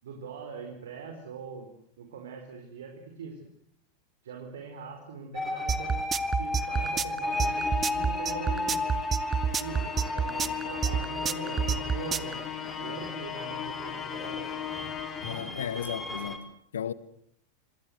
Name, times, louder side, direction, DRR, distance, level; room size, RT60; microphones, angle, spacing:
voice 1, 0.0-1.7 2.0-3.5 4.2-6.0 6.4-8.8 9.6-12.5 12.8-14.5, right 5 dB, 60° right, 4.9 m, -42 dB
sound 1, 5.3-16.4, left 2 dB, 10° left, 5.1 m, -35 dB
sound 2, 5.7-12.3, right 7 dB, 20° right, 1.3 m, -27 dB
Musical instrument, 7.2-15.7, left 9 dB, 35° left, 3.6 m, -38 dB
voice 2, 15.2-16.9, left 8 dB, 65° left, 1.6 m, -35 dB
27.0 x 26.5 x 8.1 m
figure-of-eight pair, 90°, 0 cm